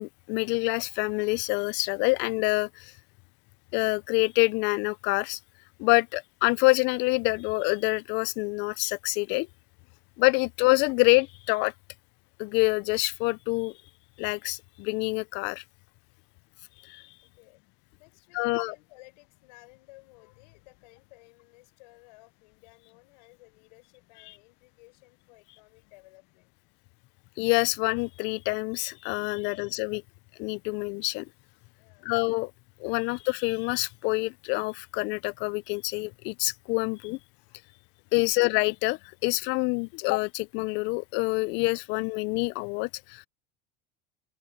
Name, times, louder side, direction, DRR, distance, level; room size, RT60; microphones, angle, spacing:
voice 1, 0.0-2.9 3.7-5.4 5.8-9.5 10.2-11.7 12.4-13.7 14.2-15.6 16.8-17.0 18.3-18.8 27.4-30.0 30.4-31.3 32.0-32.5 32.8-37.2 38.1-43.3, left 25 dB, 60° left, 0.5 m, -26 dB
voice 2, 17.9-26.5 29.3-29.6 31.8-32.1, left 24 dB, 80° left, 5.7 m, -56 dB
supercardioid pair, 125°, 21 cm